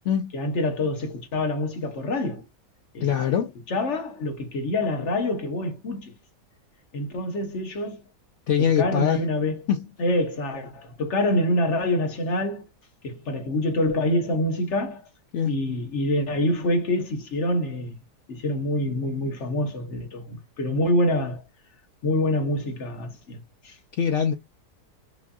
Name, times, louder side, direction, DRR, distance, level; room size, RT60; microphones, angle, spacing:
voice 1, 0.3-2.4 2.9-3.1 3.7-6.1 6.9-8.0 8.8-9.6 10.0-12.6 13.0-15.0 15.4-18.0 18.3-21.4 22.0-23.8, left 1 dB, 50° left, 1.1 m, -26 dB
voice 2, 3.0-3.5 8.5-9.3 9.7-9.9 15.3-15.6 24.0-24.3, left 8 dB, 80° left, 0.6 m, -23 dB
5.2 x 2.7 x 2.3 m
omnidirectional pair, 1.8 m